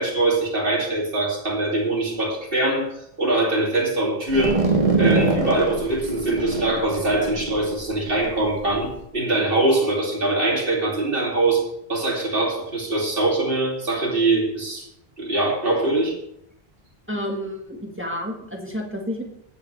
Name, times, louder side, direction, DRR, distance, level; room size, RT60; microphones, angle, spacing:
voice 1, 0.0-2.9 3.2-4.6 4.9-11.6 11.9-14.9 15.2-16.1, right 2 dB, 60° right, -2 dB, 3.1 m, -22 dB
sound 1, 4.3-9.0, right 3 dB, 45° right, 1.8 m, -24 dB
voice 2, 17.1-19.2, equal, 10° right, 1 dB, 1.6 m, -30 dB
22.0 x 8.2 x 3.3 m, 0.74 s
omnidirectional pair, 1.0 m